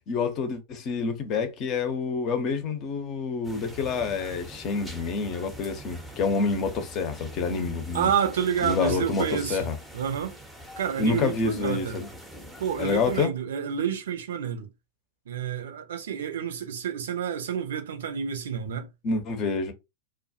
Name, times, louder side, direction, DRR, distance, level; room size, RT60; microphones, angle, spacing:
voice 1, 0.1-8.1 8.6-9.7 11.0-12.1 12.8-13.3 19.0-19.7, left 4 dB, 35° left, 0.6 m, -28 dB
sound 1, 3.4-13.3, right 1 dB, ahead, 0.6 m, -44 dB
voice 2, 7.9-9.7 9.9-10.4 10.8-12.0 12.6-14.7 15.3-18.9, right 8 dB, 60° right, 0.5 m, -29 dB
2.2 x 2.0 x 2.7 m
figure-of-eight pair, 90°, 0 cm